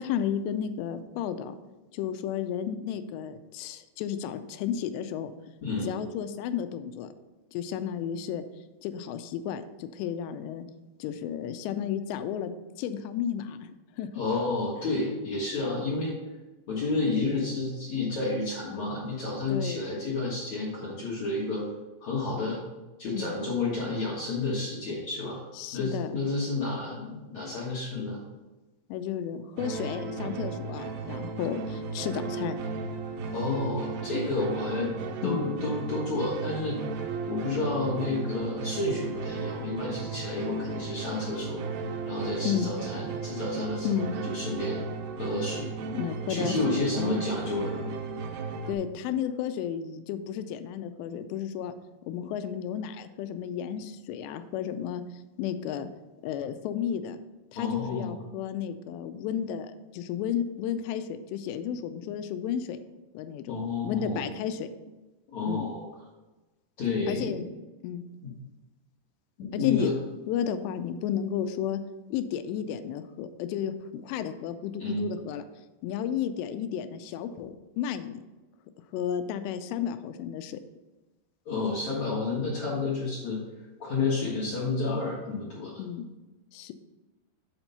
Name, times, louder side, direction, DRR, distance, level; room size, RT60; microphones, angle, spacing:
voice 1, 0.0-1.5 1.9-5.3 5.8-7.1 7.5-8.4 8.8-10.6 11.0-12.5 12.8-14.1 19.5-19.8 23.1-23.4 25.6-26.1 28.9-32.6 35.2-35.5 42.5-42.7 43.8-44.1 45.9-47.2 48.7-51.8 52.1-55.9 56.2-57.2 57.5-62.8 63.1-63.6 63.8-64.7 65.4-65.7 67.1-67.5 67.8-68.0 69.5-69.9 70.3-71.8 72.1-75.4 75.8-78.2 78.9-80.6 85.8-86.1 86.5-86.7, left 9 dB, 90° left, 10 dB, 2.8 m, -32 dB
voice 2, 14.1-16.1 16.7-21.6 22.0-22.6 23.0-25.4 25.7-28.2 33.3-34.9 35.2-36.8 37.3-41.6 42.1-44.8 45.2-45.7 46.3-47.8 57.6-58.1 63.5-64.2 65.3-65.8 66.8-67.4 68.2-68.3 69.4-69.9 74.8-75.1 81.5-83.4 83.8-85.8, left 3 dB, 65° left, -6 dB, 1.8 m, -30 dB
sound 1, 29.6-48.7, right 4 dB, 80° right, 2.7 m, -35 dB
8.0 x 4.4 x 5.4 m, 1.1 s
omnidirectional pair, 4.9 m